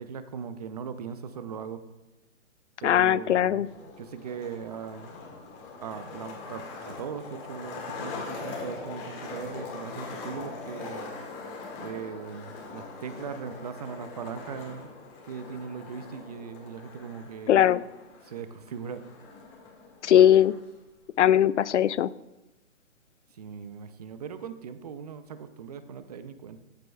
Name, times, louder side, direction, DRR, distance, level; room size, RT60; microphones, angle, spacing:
voice 1, 0.0-1.8 2.8-5.1 5.8-11.2 11.8-14.9 15.2-17.7 18.2-19.0 23.3-26.6, right 6 dB, 30° right, 11 dB, 0.6 m, -39 dB
voice 2, 2.8-3.7 17.5-17.8 20.0-20.5 21.2-22.1, left 11 dB, 65° left, 19 dB, 0.5 m, -20 dB
Skateboard, 3.6-20.6, left 4 dB, 25° left, 1.9 m, -42 dB
14.0 x 7.7 x 2.3 m, 1.0 s
hypercardioid pair, 145°, 38 cm